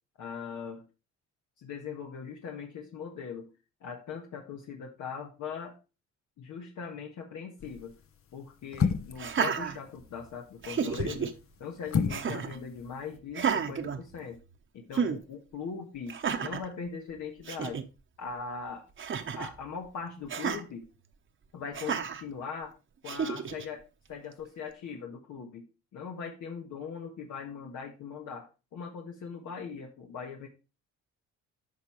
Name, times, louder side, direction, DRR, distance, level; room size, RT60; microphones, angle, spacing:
voice 1, 0.2-0.8 1.6-3.5 3.8-5.8 6.4-7.9 8.3-11.3 11.6-14.4 14.7-17.8 18.2-18.8 19.4-20.9 21.5-22.7 23.0-30.5, left 6 dB, 75° left, 1 dB, 1.5 m, -40 dB
sound 1, 7.6-7.9 8.7-9.3 10.7-11.2 11.9-12.3 12.5-12.6, left 6 dB, 45° left, 0.9 m, -29 dB
Laughter, 9.1-10.3 10.6-11.3 12.1-12.6 13.3-14.5 14.9-15.2 16.1-16.7 17.2-17.3 17.4-17.8 19.0-19.6 20.3-20.6 21.7-22.2 23.0-23.6, right 6 dB, 40° right, 1.0 m, -31 dB
9.3 x 5.8 x 3.1 m, 0.30 s
cardioid pair, 90°, 30 cm